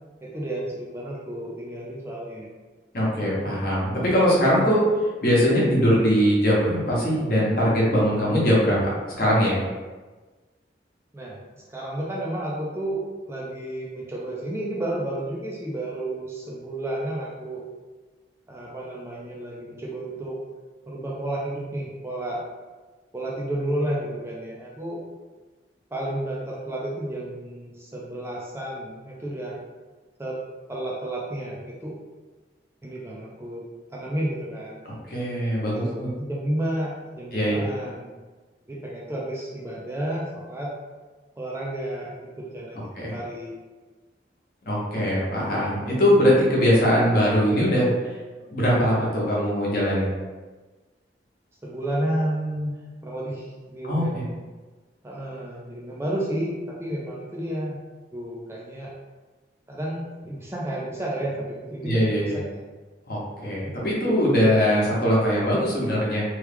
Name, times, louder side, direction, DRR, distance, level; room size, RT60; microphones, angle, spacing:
voice 1, 0.2-2.5 11.1-17.6 18.5-20.4 20.9-22.4 23.1-25.0 25.9-29.6 30.2-30.4 30.7-32.0 32.8-33.6 33.9-34.8 35.6-38.1 38.7-40.7 41.4-43.5 51.6-52.8 53.0-54.2 55.0-57.8 58.1-58.9 59.7-62.6, right 1 dB, 15° right, -4 dB, 0.4 m, -31 dB
voice 2, 2.9-4.8 5.2-9.6 34.8-36.1 37.3-37.7 42.9-43.1 44.7-47.9 48.5-50.1 53.8-54.2 61.8-62.3 63.1-66.2, equal, 50° left, -5 dB, 0.9 m, -21 dB
3.0 x 2.3 x 3.3 m, 1.3 s
head